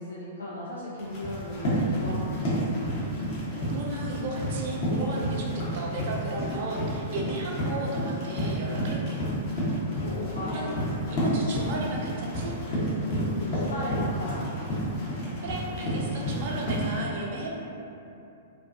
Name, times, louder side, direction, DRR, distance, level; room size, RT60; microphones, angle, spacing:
voice 1, 0.0-2.7 10.0-10.8 13.2-14.4, left 1 dB, 75° left, -7 dB, 0.4 m, -36 dB
Run, 1.0-17.0, equal, 40° left, 0.8 m, -30 dB
voice 2, 3.5-5.5 5.7-9.2 10.5-10.7 11.1-12.6 15.4-17.5, right 2 dB, 50° right, -3 dB, 0.4 m, -34 dB
2.3 x 2.3 x 2.5 m, 2.7 s
figure-of-eight pair, 105°, 0 cm